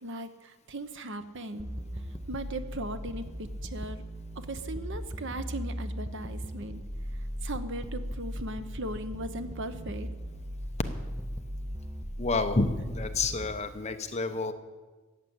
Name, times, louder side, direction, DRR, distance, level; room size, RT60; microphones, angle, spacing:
voice 1, 0.0-1.7 2.3-4.0 4.3-6.8 7.4-10.1, right 1 dB, 55° right, 10 dB, 0.9 m, -38 dB
sound 1, 1.6-13.5, equal, 15° right, 0.7 m, -38 dB
voice 2, 12.2-14.5, left 3 dB, 30° left, 7 dB, 0.8 m, -29 dB
14.5 x 8.6 x 8.0 m, 1.3 s
head